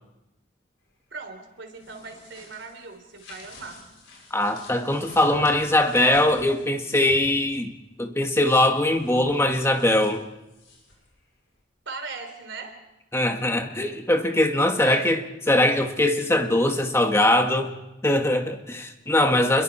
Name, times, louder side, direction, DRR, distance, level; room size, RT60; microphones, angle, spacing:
voice 1, 1.1-3.8 11.9-12.7 14.8-15.1 19.5-19.6, right 4 dB, 65° right, 4 dB, 3.6 m, -39 dB
sound 1, 1.6-7.4 8.8-11.1, left 1 dB, 75° left, 6.6 m, -47 dB
voice 2, 4.3-7.7 8.0-10.2 13.1-17.7 18.0-19.6, left 1 dB, 15° left, 5 dB, 1.5 m, -21 dB
29.0 x 22.0 x 4.4 m, 0.97 s
head